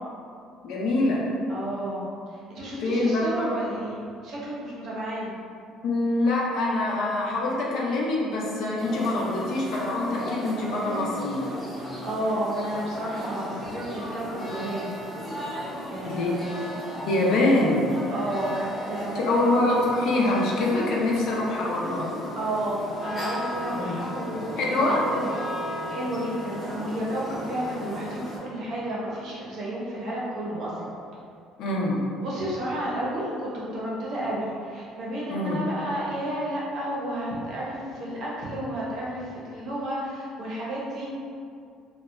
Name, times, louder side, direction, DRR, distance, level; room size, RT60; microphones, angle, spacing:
voice 1, 0.6-1.3 2.8-3.3 5.8-11.6 16.0-16.4 17.1-17.9 19.1-22.1 23.7-24.0 24.6-25.0 31.6-32.0 35.3-35.6, left 2 dB, 60° left, -3 dB, 0.4 m, -24 dB
voice 2, 1.5-2.1 2.5-5.3 11.8-15.0 15.9-16.5 18.1-19.4 22.3-24.7 25.1-25.3 25.6-30.7 32.2-41.1, right 1 dB, 50° right, -6 dB, 0.7 m, -31 dB
sound 1, 8.8-28.4, equal, 5° left, 0.8 m, -36 dB
2.7 x 2.2 x 2.3 m, 2.3 s
cardioid pair, 160°, 0 cm